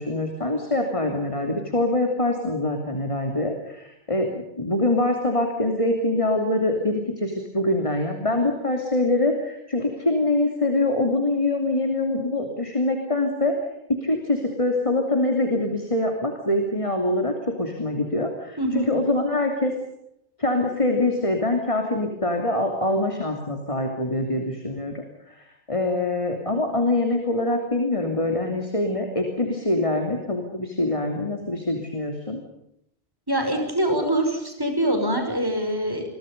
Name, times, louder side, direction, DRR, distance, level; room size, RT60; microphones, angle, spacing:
voice 1, 0.0-13.6 14.0-19.7 20.4-32.4, left 2 dB, 30° left, 4 dB, 3.1 m, -24 dB
voice 2, 18.6-18.9 33.3-36.0, right 1 dB, 20° right, 4 dB, 6.2 m, -24 dB
28.0 x 23.5 x 5.4 m, 0.80 s
omnidirectional pair, 1.1 m